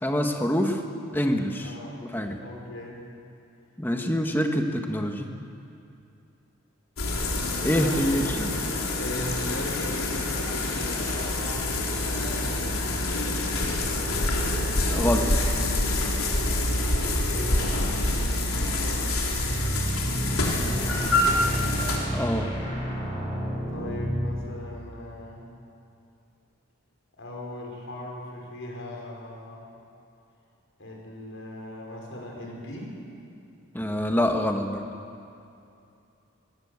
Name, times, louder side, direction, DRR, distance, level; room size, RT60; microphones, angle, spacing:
voice 1, 0.0-0.8 1.1-1.7 2.1-2.4 3.8-5.3 7.6-8.7 14.8-15.3 22.1-22.5 33.7-34.9, equal, 10° left, 3 dB, 1.5 m, -26 dB
voice 2, 1.6-2.0 2.4-3.0 7.4-8.3 8.8-12.7 13.2-13.8 16.9-19.1 20.6-21.9 23.7-25.5 27.2-29.7 30.8-32.9, left 1 dB, 65° left, -1 dB, 5.6 m, -39 dB
sound 1, 7.0-22.0, left 2 dB, 85° left, 3.4 m, -26 dB
sound 2, 19.3-24.4, equal, 25° left, 6.6 m, -31 dB
23.0 x 17.5 x 8.3 m, 2.7 s
head